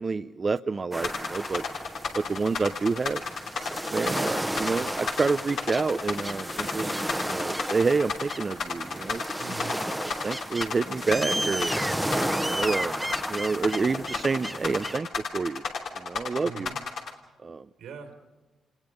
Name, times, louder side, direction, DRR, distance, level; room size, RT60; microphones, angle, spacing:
voice 1, 0.0-1.6 2.2-3.2 3.9-9.2 10.0-11.7 12.4-13.0 13.3-15.6 16.0-16.7 17.4-17.7, right 4 dB, 40° right, 10 dB, 0.6 m, -28 dB
sound 1, 0.9-15.0, right 1 dB, 5° right, 1.1 m, -33 dB
sound 2, 1.0-17.1, left 5 dB, 75° left, 3.0 m, -32 dB
voice 2, 9.4-9.7 16.4-16.8 17.8-18.3, right 6 dB, 90° right, 3 dB, 4.5 m, -42 dB
29.0 x 19.5 x 5.2 m, 1.2 s
supercardioid pair, 60°, 0 cm